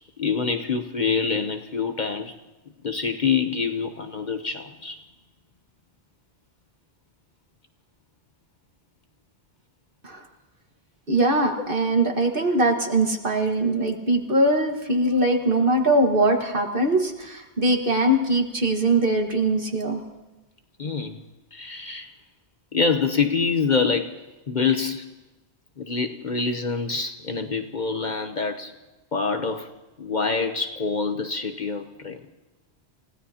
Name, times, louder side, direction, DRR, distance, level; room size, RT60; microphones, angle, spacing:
voice 1, 0.2-2.3 2.8-5.0 20.8-21.2 21.5-22.1 22.7-25.2 25.8-28.7 29.1-32.2, left 5 dB, 45° left, 6 dB, 1.0 m, -26 dB
voice 2, 11.1-20.0, right 1 dB, 50° right, 2 dB, 2.0 m, -22 dB
29.5 x 16.5 x 2.9 m, 1.1 s
omnidirectional pair, 1.1 m